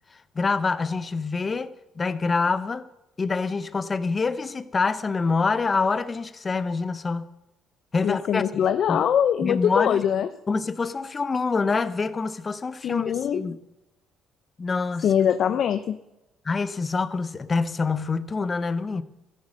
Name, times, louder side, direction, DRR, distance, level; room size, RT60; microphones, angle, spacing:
voice 1, 0.3-1.7 2.0-2.8 3.2-7.3 7.9-8.4 8.9-9.0 9.4-10.0 10.5-13.6 14.6-15.1 16.4-19.0, left 4 dB, 30° left, 1.0 m, -26 dB
voice 2, 8.0-10.3 12.8-13.4 15.0-16.0, left 9 dB, 60° left, 0.7 m, -22 dB
14.0 x 11.5 x 6.5 m
cardioid pair, 95°, 0 cm